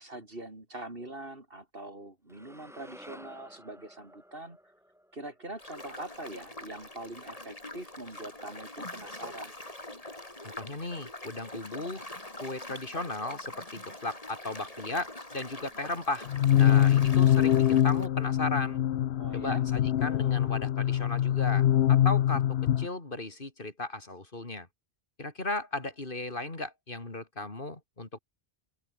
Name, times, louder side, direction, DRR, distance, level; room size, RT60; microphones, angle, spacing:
voice 1, 0.0-4.6 5.1-9.5 19.2-19.7, right 2 dB, 60° right, 4.9 m, -43 dB
sound 1, 2.3-6.5, equal, 5° right, 2.7 m, -53 dB
sound 2, 5.6-18.1, left 1 dB, 35° left, 3.8 m, -44 dB
voice 2, 10.4-12.0 12.4-16.3 16.6-18.8 19.3-24.7 25.2-28.2, left 2 dB, 55° left, 3.4 m, -36 dB
sound 3, 16.3-22.9, left 11 dB, 85° left, 0.9 m, -24 dB
open air
omnidirectional pair, 1.1 m